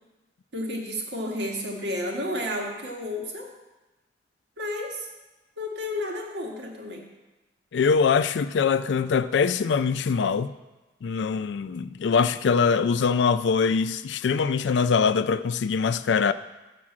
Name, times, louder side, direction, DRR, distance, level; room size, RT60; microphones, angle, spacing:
voice 1, 0.5-3.5 4.6-5.1 5.6-7.1, left 1 dB, 90° right, 1.5 m, -31 dB
voice 2, 7.7-10.5 11.0-16.3, left 5 dB, 90° left, 0.4 m, -23 dB
6.7 x 6.2 x 7.3 m
head